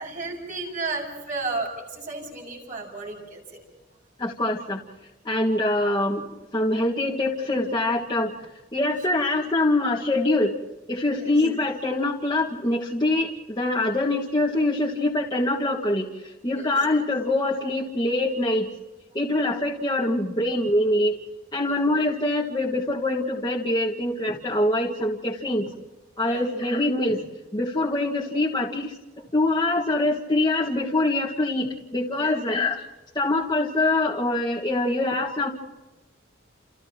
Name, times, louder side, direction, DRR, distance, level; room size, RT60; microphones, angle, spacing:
voice 1, 0.0-3.4 11.2-11.3 16.5-16.7 21.6-21.8 26.3-26.5 32.2-32.4, right 3 dB, 45° right, 0 dB, 7.0 m, -33 dB
voice 2, 4.2-4.8 5.3-6.2 6.5-8.3 8.7-10.6 10.9-18.7 19.1-21.1 21.5-25.7 26.2-28.9 29.3-32.8 33.2-35.5, left 2 dB, 25° left, -4 dB, 1.7 m, -24 dB
30.0 x 29.0 x 3.0 m, 1.1 s
head